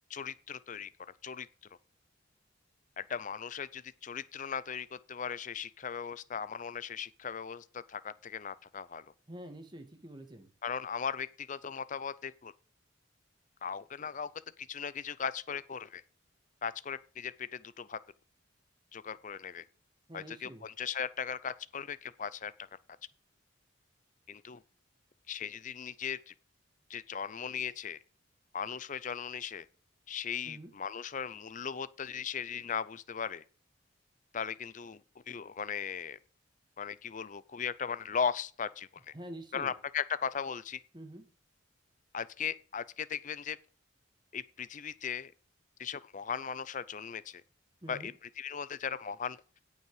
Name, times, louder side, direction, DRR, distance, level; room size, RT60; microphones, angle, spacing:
voice 1, 0.1-0.9 1.2-1.5 3.0-9.1 10.6-12.5 13.6-14.3 14.6-16.0 16.6-18.0 18.9-19.6 20.1-22.5 24.3-24.6 25.3-26.3 26.9-28.0 28.5-29.7 30.1-33.4 34.3-35.0 35.3-36.2 36.8-38.9 39.5-40.8 42.1-43.6 44.3-45.3 45.8-47.4 47.9-48.1 48.4-49.4, left 7 dB, 40° left, 0.5 m, -38 dB
voice 2, 9.3-10.5 20.1-20.7 30.4-30.7 39.1-39.7 40.9-41.2 47.8-48.1, right 1 dB, 25° right, 1.8 m, -46 dB
16.5 x 5.6 x 4.9 m
head